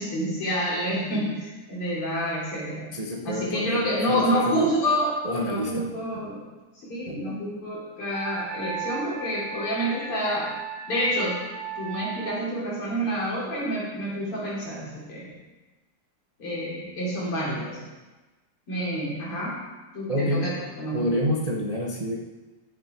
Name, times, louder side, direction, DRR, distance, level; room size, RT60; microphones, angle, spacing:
voice 1, 0.0-2.9 3.2-5.1 5.4-6.4 6.7-10.5 10.9-11.4 11.8-15.3 16.4-17.8 18.7-19.6 19.9-21.1, equal, 80° left, -7 dB, 4.3 m, -28 dB
voice 2, 2.9-4.7 5.2-5.9 6.1-6.2 7.1-7.4 20.1-20.5 20.9-22.2, equal, 40° right, -2 dB, 0.5 m, -28 dB
Wind instrument woodwind instrument, 8.1-12.4, right 6 dB, 70° right, 2.6 m, -36 dB
14.5 x 6.6 x 4.5 m, 1.2 s
omnidirectional pair, 2.4 m